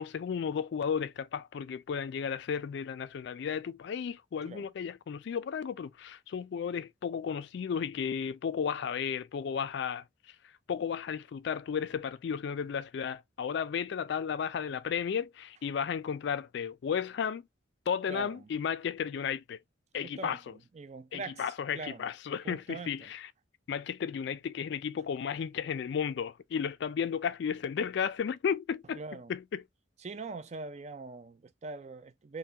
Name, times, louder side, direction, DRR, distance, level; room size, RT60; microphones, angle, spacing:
voice 1, 0.0-10.0 10.7-17.4 17.9-19.6 19.9-20.5 21.1-23.3 23.7-29.6, left 7 dB, 60° left, 0.3 m, -34 dB
voice 2, 18.1-18.4 20.2-20.4 20.7-21.4 21.7-22.0 22.4-22.9 28.9-29.3 30.0-32.4, right 3 dB, 35° right, 0.4 m, -42 dB
4.4 x 2.1 x 2.7 m
head